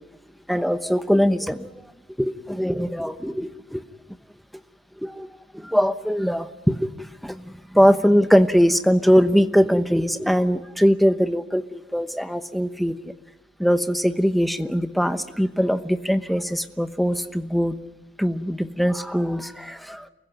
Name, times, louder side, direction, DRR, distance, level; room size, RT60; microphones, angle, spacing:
voice 1, 0.5-1.7 2.2-3.8 5.0-6.9 7.2-13.1 13.6-17.7 18.2-20.1, equal, ahead, 9 dB, 1.0 m, -21 dB
29.0 x 15.5 x 9.2 m, 1.1 s
head